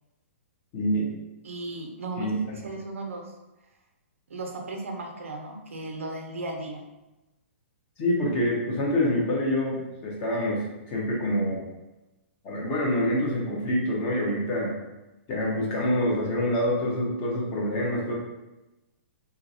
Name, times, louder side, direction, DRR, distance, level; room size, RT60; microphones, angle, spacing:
voice 1, 0.7-1.1 2.2-2.3 8.0-11.6 12.4-14.7 15.3-18.2, left 1 dB, 35° left, -3 dB, 0.9 m, -26 dB
voice 2, 1.4-3.2 4.3-6.8, right 2 dB, 90° right, 2 dB, 0.6 m, -35 dB
2.7 x 2.6 x 2.6 m, 1.0 s
hypercardioid pair, 140°, 7 cm